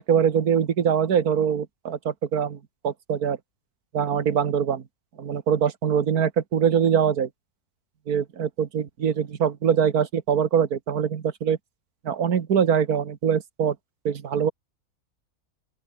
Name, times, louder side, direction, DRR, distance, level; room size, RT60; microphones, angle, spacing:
voice 1, 0.1-3.4 3.9-4.8 5.2-7.3 8.1-11.6 12.0-13.8 14.1-14.5, right 7 dB, 80° right, 1.9 m, -23 dB
open air
omnidirectional pair, 1.6 m